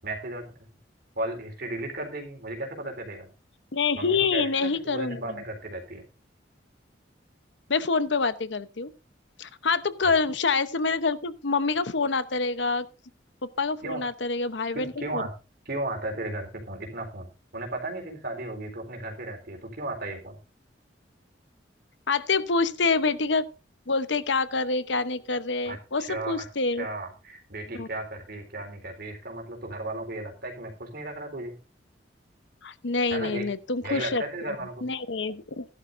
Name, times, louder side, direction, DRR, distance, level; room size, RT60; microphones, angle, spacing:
voice 1, 0.0-0.7 1.2-3.3 3.9-6.0 10.0-10.1 13.8-14.0 14.7-15.3 15.7-17.3 17.5-20.4 25.7-26.4 26.8-31.6 33.1-33.5 33.8-34.9, right 2 dB, 55° right, 3.8 m, -35 dB
voice 2, 3.7-5.2 7.7-8.9 9.4-12.9 13.6-15.2 22.1-23.4 23.9-26.9 27.8-27.9 32.6-34.2 34.8-35.6, left 4 dB, 70° left, 0.9 m, -26 dB
16.0 x 11.5 x 2.6 m
head